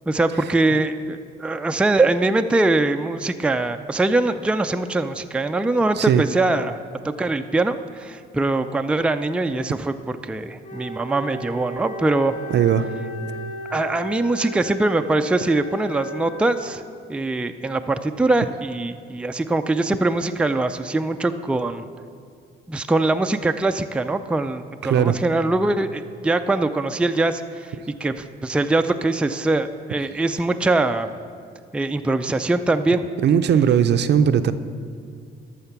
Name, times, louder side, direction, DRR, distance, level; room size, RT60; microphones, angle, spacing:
voice 1, 0.1-6.9 7.2-12.3 13.7-16.8 17.1-21.8 22.7-27.7 28.0-31.1 31.7-33.1, right 2 dB, 5° right, 7 dB, 0.4 m, -22 dB
Wind instrument woodwind instrument, 10.6-17.0, equal, 40° left, 1.4 m, -35 dB
voice 2, 12.5-12.9 24.8-25.2 33.2-34.5, right 8 dB, 60° right, 11 dB, 0.5 m, -18 dB
12.5 x 6.5 x 5.9 m, 2.2 s
cardioid pair, 90°, 20 cm